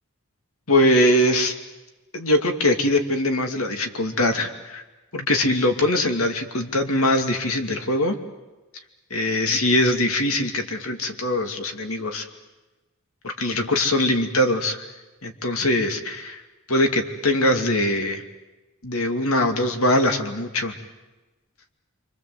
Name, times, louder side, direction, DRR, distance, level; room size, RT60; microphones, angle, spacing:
voice 1, 0.7-1.5 2.1-4.8 5.1-8.2 9.1-12.3 13.2-14.8 15.2-16.4 16.7-18.2 18.8-20.8, left 1 dB, 80° left, 5 dB, 2.6 m, -22 dB
28.0 x 25.0 x 8.0 m, 1.1 s
head